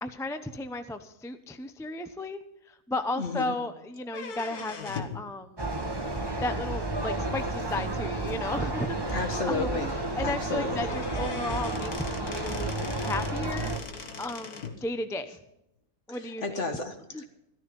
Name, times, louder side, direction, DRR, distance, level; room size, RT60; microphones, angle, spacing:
voice 1, 0.0-5.7 6.4-9.8 10.2-12.7 13.0-13.7 14.2-15.3 16.1-16.4 17.1-17.2, left 2 dB, 5° left, 9 dB, 0.5 m, -34 dB
voice 2, 3.2-3.5 9.1-10.0 10.2-10.9 16.1-17.2, left 3 dB, 50° left, 6 dB, 2.0 m, -32 dB
sound 1, 4.0-5.2 7.0-7.1 8.0-8.1 8.5-8.6 8.9-9.0 10.4-10.5 10.8-14.8, left 5 dB, 80° left, 1.9 m, -40 dB
sound 2, 5.6-13.8, right 2 dB, 15° right, 1.5 m, -31 dB
14.0 x 13.5 x 5.4 m, 0.85 s
omnidirectional pair, 1.6 m